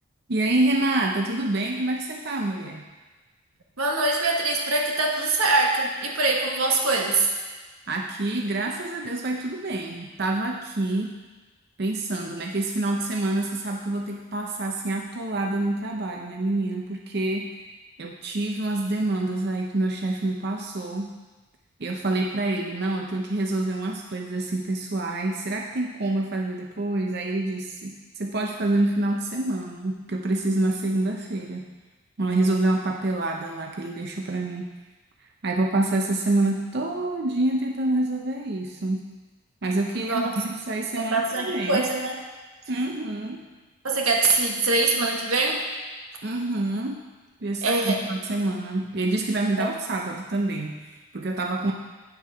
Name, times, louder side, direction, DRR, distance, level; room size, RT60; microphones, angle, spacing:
voice 1, 0.3-2.9 7.9-11.1 11.8-17.6 18.0-21.2 21.8-31.7 32.2-34.7 35.4-39.1 39.6-41.9 42.7-43.4 46.2-47.0 47.4-51.7, right 2 dB, 50° right, 1 dB, 0.6 m, -27 dB
voice 2, 3.8-7.3 39.9-40.4 41.0-42.2 43.8-45.6 47.6-48.0 49.6-49.7, right 3 dB, 90° right, 1 dB, 1.5 m, -23 dB
8.9 x 7.6 x 5.6 m, 1.3 s
head